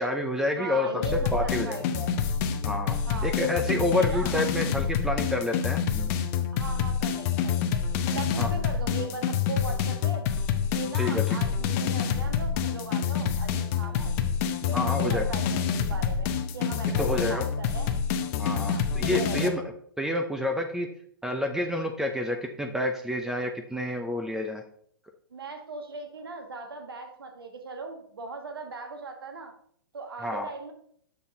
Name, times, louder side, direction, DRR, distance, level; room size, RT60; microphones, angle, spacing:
voice 1, 0.0-1.8 2.6-6.1 8.4-8.5 11.0-11.4 14.7-15.2 17.0-17.4 18.4-19.6 20.0-20.9 21.2-24.6 30.2-30.5, left 1 dB, 5° right, 4 dB, 0.5 m, -29 dB
voice 2, 0.6-2.1 3.1-3.4 3.9-4.4 6.5-10.2 10.7-14.1 14.7-17.9 18.6-19.5 25.3-29.5 29.9-30.7, right 3 dB, 75° right, 4 dB, 1.4 m, -39 dB
sound 1, 1.0-19.5, left 7 dB, 40° left, 0.7 m, -27 dB
6.9 x 5.9 x 3.7 m, 0.63 s
hypercardioid pair, 115°, 12 cm